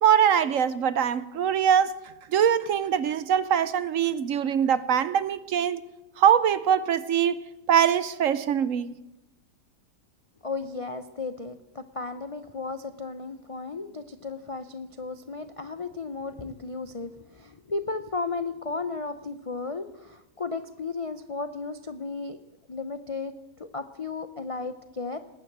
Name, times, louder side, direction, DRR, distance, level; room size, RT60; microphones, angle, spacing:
voice 1, 0.0-1.9 2.3-5.8 6.2-7.4 7.7-9.0, right 8 dB, 60° right, 1.0 m, -23 dB
voice 2, 10.4-22.4 22.7-25.2, left 3 dB, 60° left, 0.3 m, -34 dB
19.5 x 9.4 x 7.9 m
omnidirectional pair, 1.7 m